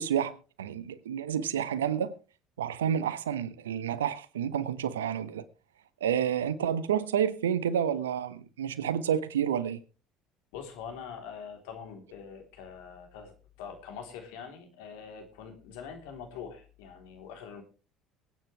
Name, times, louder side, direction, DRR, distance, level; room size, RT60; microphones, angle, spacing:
voice 1, 0.0-2.2 2.6-5.4 6.0-9.8, right 9 dB, 85° right, 0.9 m, -29 dB
voice 2, 10.5-13.3 13.6-17.6, left 7 dB, 70° left, 3.6 m, -44 dB
22.5 x 9.4 x 3.4 m
hypercardioid pair, 60°, 0 cm